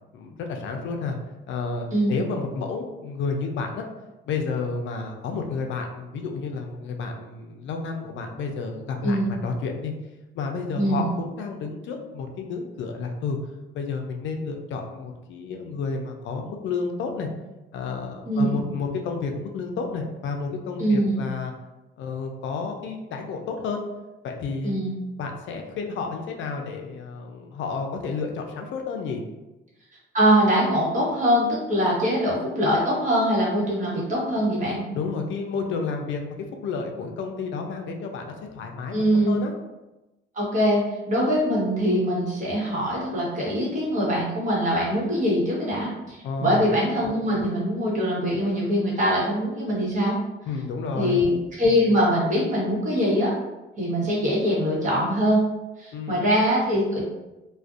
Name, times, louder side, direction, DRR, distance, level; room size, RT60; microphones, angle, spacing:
voice 1, 0.1-1.2 1.5-3.8 4.3-9.9 10.3-13.4 13.7-17.3 17.7-21.5 22.0-23.8 24.2-24.9 25.2-29.2 34.9-36.4 36.6-38.9 39.3-39.5 46.2-46.7 50.5-51.2 55.9-56.2, left 4 dB, 70° left, 3 dB, 0.4 m, -31 dB
voice 2, 10.7-11.1 18.3-18.6 20.8-21.2 24.6-24.9 30.1-34.8 38.9-39.3 40.3-40.8 41.1-50.2 51.0-53.3 53.8-55.4 55.8-57.0, equal, 40° right, -6 dB, 1.1 m, -23 dB
2.4 x 2.1 x 2.4 m, 1.0 s
cardioid pair, 90°, 20 cm